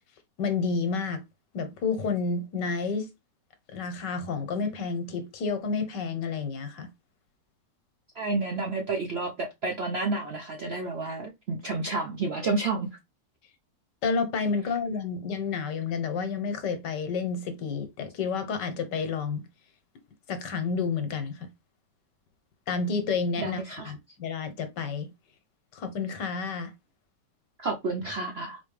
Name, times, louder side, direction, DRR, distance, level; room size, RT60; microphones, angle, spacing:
voice 1, 0.4-1.2 1.5-3.1 3.7-6.9 14.0-19.4 20.3-21.5 22.7-25.1 25.7-26.7, left 5 dB, 80° left, 1.5 m, -30 dB
voice 2, 8.2-12.9 23.4-23.9 27.6-28.6, right 3 dB, 65° right, 0.6 m, -30 dB
4.3 x 3.1 x 3.1 m
omnidirectional pair, 1.9 m